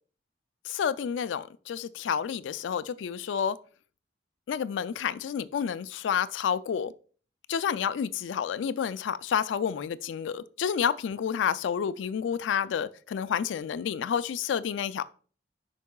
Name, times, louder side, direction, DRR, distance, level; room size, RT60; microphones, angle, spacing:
voice 1, 0.6-3.6 4.5-6.9 7.5-15.0, left 7 dB, 80° left, 0.3 m, -29 dB
8.2 x 5.5 x 2.3 m
head